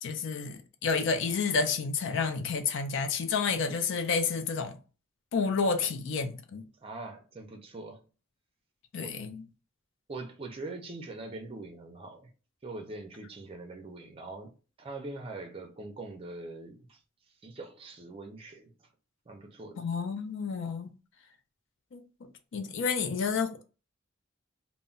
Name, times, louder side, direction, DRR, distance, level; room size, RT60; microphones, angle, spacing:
voice 1, 0.0-4.8 5.3-6.6 8.9-9.4 19.8-20.9 21.9-22.0 22.5-23.6, left 5 dB, 65° left, 0.4 m, -30 dB
voice 2, 6.8-8.0 9.0-9.2 10.1-12.3 12.6-14.5 14.8-17.0 17.4-18.7 19.3-19.8, right 2 dB, 30° right, 0.4 m, -42 dB
2.1 x 2.0 x 3.7 m
head